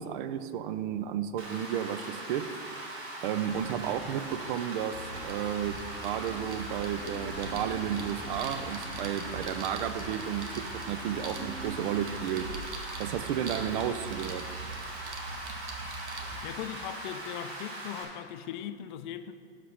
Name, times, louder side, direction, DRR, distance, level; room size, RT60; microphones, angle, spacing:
voice 1, 0.0-2.5 3.2-12.5 13.0-14.5, right 9 dB, 50° right, 0.4 m, -33 dB
Rain, 1.4-18.0, right 1 dB, 70° right, 2.0 m, -41 dB
sound 1, 3.4-11.8, right 1 dB, 30° right, 1.6 m, -47 dB
sound 2, 4.9-16.4, right 3 dB, 85° right, 1.1 m, -43 dB
voice 2, 16.4-19.3, left 10 dB, 45° left, 0.4 m, -39 dB
6.5 x 5.5 x 5.6 m
hypercardioid pair, 100°, 34 cm